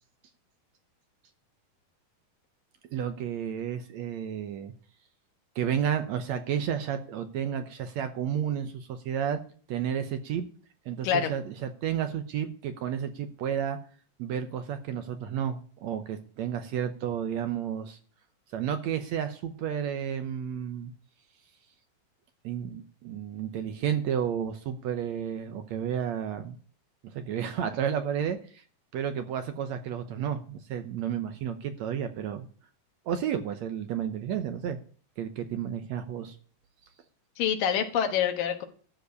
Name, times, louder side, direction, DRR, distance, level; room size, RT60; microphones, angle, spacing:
voice 1, 2.9-4.7 5.6-9.4 9.7-10.5 10.9-13.8 14.2-18.0 18.5-20.9 22.4-26.6 27.0-28.6 28.9-32.5 33.1-34.8 35.2-36.4, right 8 dB, 70° right, 8 dB, 1.9 m, -31 dB
voice 2, 37.4-38.7, left 8 dB, 85° left, 7 dB, 3.0 m, -26 dB
13.0 x 5.3 x 8.3 m, 0.43 s
omnidirectional pair, 3.8 m